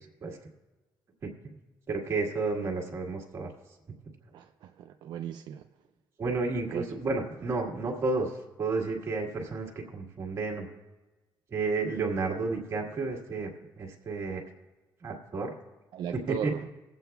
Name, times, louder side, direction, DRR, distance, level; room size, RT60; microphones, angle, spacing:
voice 1, 1.2-1.5 1.9-3.5 6.2-10.7 11.5-14.4 15.0-15.5 16.1-16.5, right 3 dB, 35° right, 0 dB, 1.5 m, -31 dB
voice 2, 4.3-5.6 6.7-6.8 15.9-16.7, right 10 dB, 65° right, 5 dB, 0.4 m, -37 dB
22.0 x 7.9 x 2.3 m, 1.1 s
cardioid pair, 160°, 8 cm